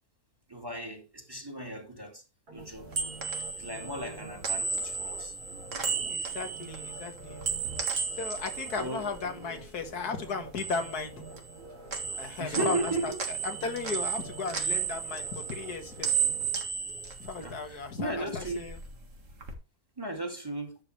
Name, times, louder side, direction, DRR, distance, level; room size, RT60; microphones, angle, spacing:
voice 1, 0.5-2.2 2.5-3.1 3.6-5.3 8.8-9.1 12.4-13.2 17.4-18.7 20.0-20.8, right 2 dB, 15° right, 2.2 m, -36 dB
sound 1, 2.5-17.5 17.9-18.1, right 3 dB, 85° right, 3.6 m, -48 dB
sound 2, 2.6-9.9 10.2-11.6 11.9-17.9 18.2-19.5, right 6 dB, 55° right, 2.1 m, -34 dB
voice 2, 6.1-7.4 8.2-11.2 12.2-16.2 17.2-18.8, left 4 dB, 85° left, 2.1 m, -35 dB
11.0 x 7.0 x 3.2 m
omnidirectional pair, 1.6 m